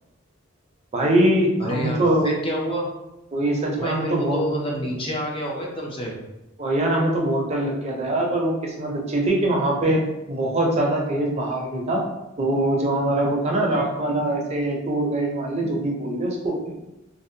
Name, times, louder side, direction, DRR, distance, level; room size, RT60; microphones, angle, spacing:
voice 1, 0.9-2.3 3.3-4.4 6.6-10.0 10.3-12.0 12.4-16.9, right 1 dB, 30° right, -1 dB, 0.5 m, -23 dB
voice 2, 1.6-2.9 3.8-6.1, equal, 25° left, -2 dB, 0.4 m, -28 dB
2.5 x 2.1 x 2.6 m, 0.95 s
head